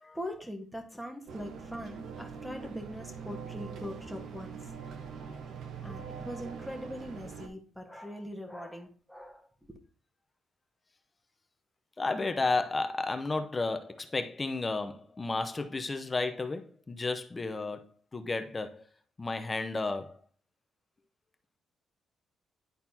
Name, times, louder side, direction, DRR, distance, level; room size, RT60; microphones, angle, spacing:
voice 1, 0.1-4.6 5.8-9.8, equal, ahead, 1.4 m, -42 dB
sound 1, 1.3-7.5, right 6 dB, 75° right, 0.9 m, -43 dB
voice 2, 12.0-18.8 19.2-20.2, left 3 dB, 25° left, 0.7 m, -32 dB
10.5 x 4.1 x 2.8 m
cardioid pair, 90°, 0 cm